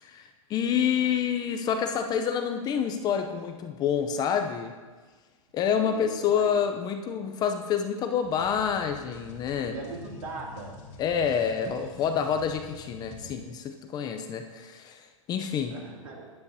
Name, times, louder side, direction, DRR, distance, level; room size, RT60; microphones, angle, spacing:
voice 1, 0.0-4.7 5.5-9.7 11.0-15.8, left 7 dB, 20° left, 6 dB, 0.6 m, -28 dB
voice 2, 5.8-6.6 9.7-10.8 15.7-16.3, right 3 dB, 70° right, -2 dB, 2.7 m, -40 dB
sound 1, 8.2-13.4, left 4 dB, 55° left, 2.1 m, -46 dB
11.0 x 9.7 x 2.8 m, 1.4 s
hypercardioid pair, 135°, 18 cm